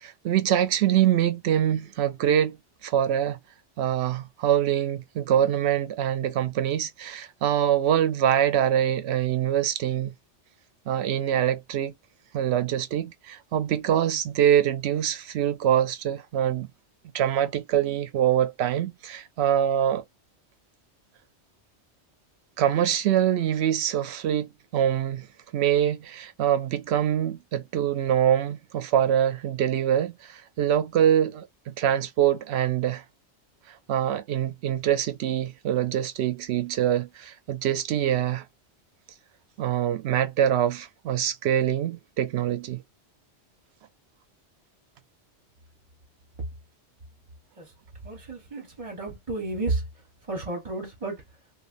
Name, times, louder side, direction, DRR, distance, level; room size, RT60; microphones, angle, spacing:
voice 1, 0.0-3.4 3.8-10.1 10.9-11.9 12.3-16.7 17.1-20.0 22.6-25.3 25.5-33.0 33.9-38.4 39.6-42.8, right 10 dB, 70° right, 0.8 m, -24 dB
voice 2, 48.0-49.8 50.3-51.2, right 2 dB, 35° right, 0.8 m, -31 dB
3.4 x 2.3 x 2.5 m
omnidirectional pair, 1.2 m